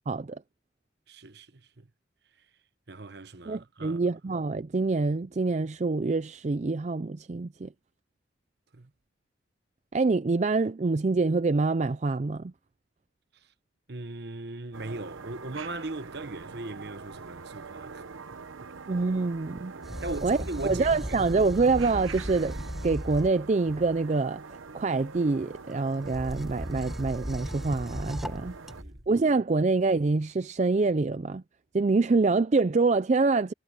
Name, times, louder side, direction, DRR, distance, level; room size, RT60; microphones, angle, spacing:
voice 1, 0.1-0.4 3.5-7.7 9.9-12.5 18.9-19.7 20.2-20.4 20.6-22.6 22.8-24.4 24.7-28.5 29.1-31.4 31.7-33.5, right 3 dB, 35° right, 0.4 m, -26 dB
voice 2, 1.1-1.9 2.9-4.0 8.7-8.9 13.9-18.0 18.6-18.7 19.7-21.2 28.3-29.0, right 2 dB, 55° right, 1.1 m, -39 dB
sound 1, 14.7-28.8, right 4 dB, 90° right, 1.0 m, -44 dB
sound 2, 19.8-24.0 26.0-29.1, equal, ahead, 0.9 m, -37 dB
head